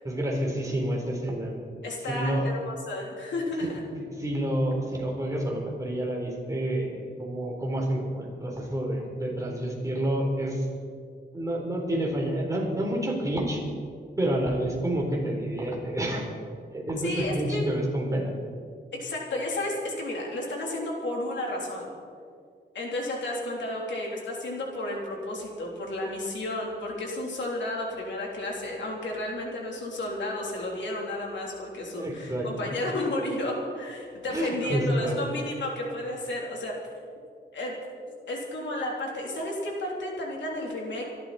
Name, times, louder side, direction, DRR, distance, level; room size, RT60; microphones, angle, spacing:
voice 1, 0.0-1.6 2.1-2.5 3.9-10.7 11.3-13.6 14.2-16.3 16.7-18.3 32.0-32.8 34.3-35.3, right 1 dB, 15° right, -2 dB, 4.0 m, -29 dB
voice 2, 1.8-3.8 17.0-17.6 18.9-21.9 22.7-36.8 37.5-37.8 38.3-41.1, left 1 dB, 90° left, -1 dB, 3.6 m, -32 dB
26.0 x 12.0 x 4.4 m, 2.2 s
wide cardioid pair, 110°, 18 cm